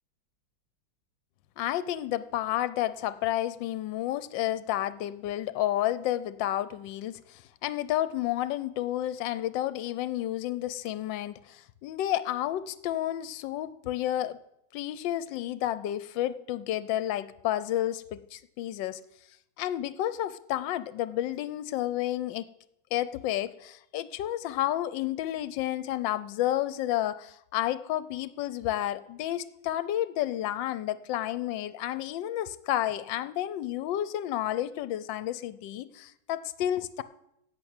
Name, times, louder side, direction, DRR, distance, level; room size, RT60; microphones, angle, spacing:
voice 1, 1.6-14.4 14.7-19.0 19.6-22.5 22.9-37.0, left 13 dB, 70° left, 15 dB, 1.3 m, -31 dB
10.5 x 7.9 x 8.8 m, 0.80 s
omnidirectional pair, 2.2 m